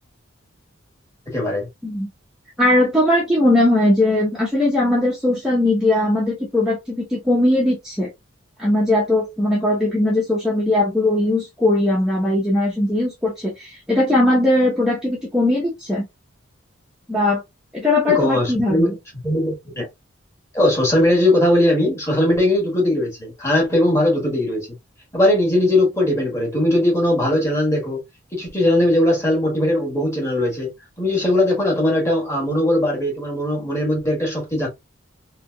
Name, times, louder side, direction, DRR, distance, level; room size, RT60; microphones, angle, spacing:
voice 1, 1.3-1.7 18.1-19.0 19.2-19.9 20.5-24.7 25.1-28.0 28.3-30.7 31.0-34.7, left 1 dB, 15° left, 1.6 m, -19 dB
voice 2, 2.6-8.1 8.6-16.0 17.1-17.4 17.7-18.9, left 1 dB, 5° right, 0.8 m, -19 dB
3.3 x 3.0 x 2.2 m
head